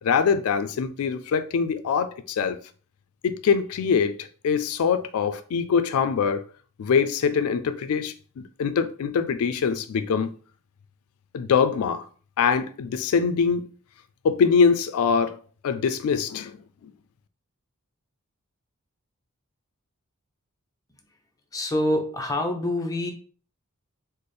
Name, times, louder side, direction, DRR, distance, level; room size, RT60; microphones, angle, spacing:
voice 1, 0.0-2.6 3.2-6.4 6.8-10.3 11.3-12.0 12.4-13.7 14.2-15.4 15.6-16.6, left 6 dB, 75° left, 0.3 m, -23 dB
voice 2, 21.5-23.1, left 1 dB, 15° left, 0.6 m, -26 dB
4.1 x 2.0 x 3.3 m
head